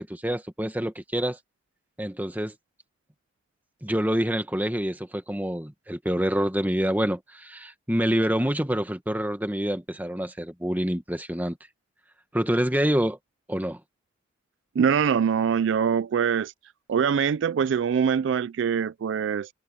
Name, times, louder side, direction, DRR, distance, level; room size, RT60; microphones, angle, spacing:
voice 1, 0.0-1.4 2.0-2.5 3.8-11.6 12.3-13.2 13.5-13.8, equal, 10° right, 1.6 m, -26 dB
voice 2, 14.8-16.5 16.9-19.5, right 7 dB, 65° right, 0.3 m, -23 dB
head